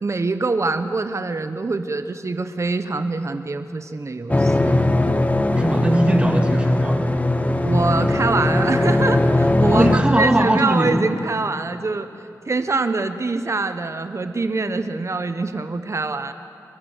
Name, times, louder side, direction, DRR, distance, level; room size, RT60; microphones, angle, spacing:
voice 1, 0.0-4.8 7.6-12.1 12.5-16.3, right 3 dB, 45° right, 10 dB, 1.0 m, -24 dB
sound 1, 4.3-10.0, left 1 dB, 20° left, 1.3 m, -19 dB
voice 2, 5.5-7.0 9.7-11.0, right 1 dB, 15° right, 3 dB, 2.6 m, -20 dB
27.5 x 13.0 x 8.0 m, 2.6 s
wide cardioid pair, 75°, 7 cm